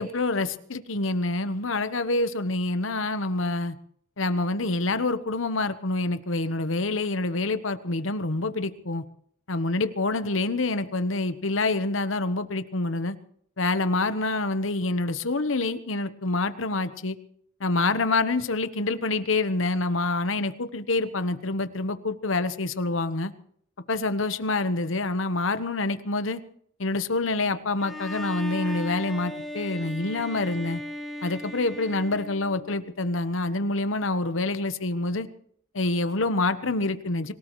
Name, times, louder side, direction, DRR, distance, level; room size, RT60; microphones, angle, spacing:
voice 1, 0.0-3.7 4.2-9.0 9.5-13.2 13.6-17.2 17.6-23.3 23.9-26.4 26.8-30.8 31.2-35.3 35.7-37.3, left 2 dB, 75° left, 11 dB, 1.1 m, -27 dB
Bowed string instrument, 27.8-32.8, left 1 dB, ahead, 2.7 m, -36 dB
25.5 x 17.5 x 3.1 m, 0.64 s
head